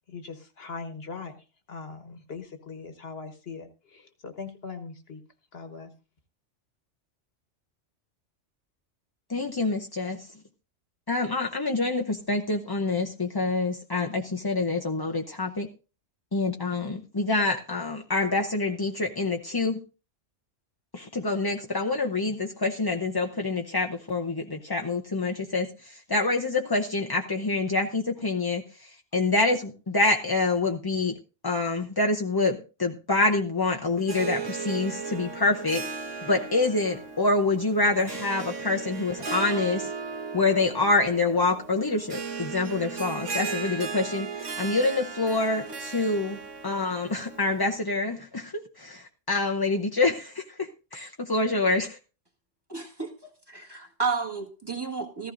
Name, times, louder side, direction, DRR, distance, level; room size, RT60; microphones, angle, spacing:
voice 1, 0.1-1.4 1.7-5.2 5.5-5.9, left 4 dB, 55° left, 8 dB, 1.4 m, -40 dB
voice 2, 9.3-10.3 11.1-15.7 16.3-19.8 20.9-31.2 31.4-35.8 36.2-39.9 40.3-52.0, left 3 dB, 25° left, 2 dB, 0.6 m, -26 dB
Harp, 34.0-47.7, right 5 dB, 80° right, 1.8 m, -36 dB
voice 3, 52.7-53.1 53.5-55.3, right 5 dB, 20° right, 1 dB, 1.7 m, -31 dB
15.0 x 14.5 x 2.6 m, 0.33 s
omnidirectional pair, 1.2 m